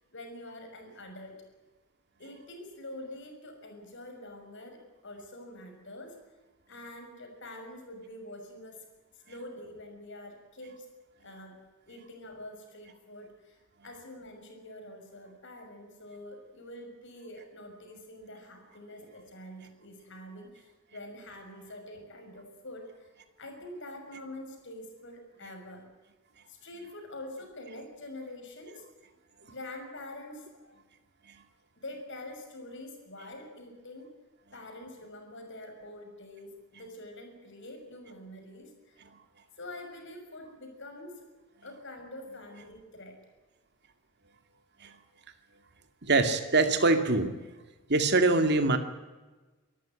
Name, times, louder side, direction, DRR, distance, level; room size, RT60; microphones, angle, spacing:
voice 1, 0.0-1.4 2.2-6.2 6.7-8.8 9.3-10.9 11.2-23.1 23.4-25.9 26.5-29.2 29.4-30.8 31.7-34.1 34.5-39.0 39.6-41.2 41.6-43.2, left 1 dB, 55° left, 4 dB, 6.1 m, -46 dB
voice 2, 46.0-47.3 47.9-48.8, right 3 dB, 50° right, 8 dB, 2.3 m, -23 dB
25.0 x 14.0 x 9.0 m, 1.2 s
head